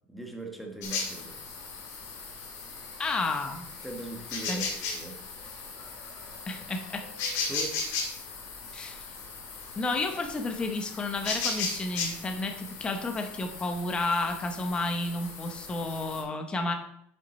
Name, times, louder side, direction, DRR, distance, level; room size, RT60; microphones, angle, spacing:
voice 1, 0.1-1.4 3.8-5.2 7.5-7.8, right 2 dB, ahead, 2 dB, 1.1 m, -40 dB
sound 1, 0.8-16.2, left 4 dB, 60° left, 2.5 m, -37 dB
voice 2, 3.0-3.7 4.5-4.6 6.5-7.0 8.7-9.1 9.8-16.7, left 2 dB, 15° left, 5 dB, 0.8 m, -31 dB
7.2 x 6.8 x 4.1 m, 0.72 s
cardioid pair, 170°, 6 cm